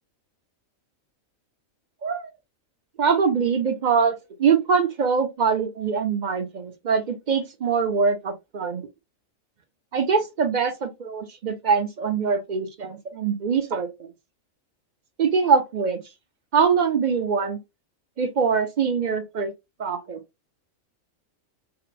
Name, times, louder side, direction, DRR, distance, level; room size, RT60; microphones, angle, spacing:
voice 1, 3.0-8.9 9.9-14.1 15.2-16.0 16.5-17.6 18.2-19.5 19.8-20.2, right 6 dB, 45° right, 0.6 m, -23 dB
3.3 x 2.9 x 3.2 m
omnidirectional pair, 1.4 m